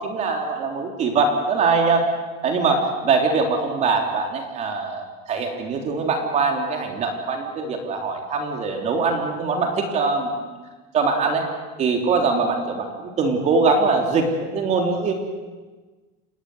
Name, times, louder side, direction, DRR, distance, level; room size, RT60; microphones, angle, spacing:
voice 1, 0.0-2.1 2.4-10.3 10.9-11.4 11.8-15.1, right 4 dB, 35° right, 3 dB, 3.5 m, -22 dB
27.5 x 20.0 x 7.9 m, 1.3 s
cardioid pair, 160°, 21 cm